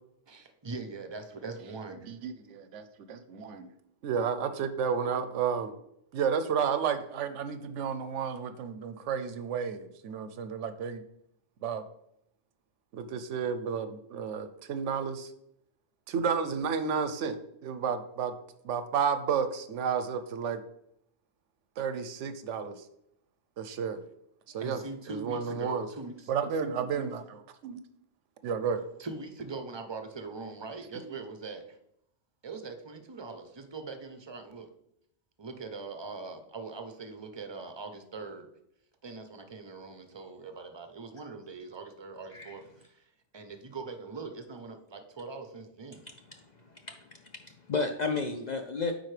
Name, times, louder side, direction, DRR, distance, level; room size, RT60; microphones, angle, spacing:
voice 1, 0.3-2.1 24.5-26.3 29.0-31.8 32.4-34.7 35.4-38.5 39.0-43.1 43.3-46.0, right 4 dB, 30° right, 7 dB, 0.5 m, -42 dB
voice 2, 2.0-3.7 4.0-5.7 6.1-11.0 11.6-11.8 12.9-15.3 16.1-18.3 18.6-20.6 21.8-22.9 23.6-24.0 24.5-24.8 25.1-25.9 26.3-27.8 28.4-28.8 30.9-31.1, right 6 dB, 90° right, 10 dB, 1.0 m, -32 dB
voice 3, 46.0-48.9, left 4 dB, 55° left, 5 dB, 0.5 m, -34 dB
9.1 x 4.2 x 3.2 m, 0.76 s
omnidirectional pair, 1.2 m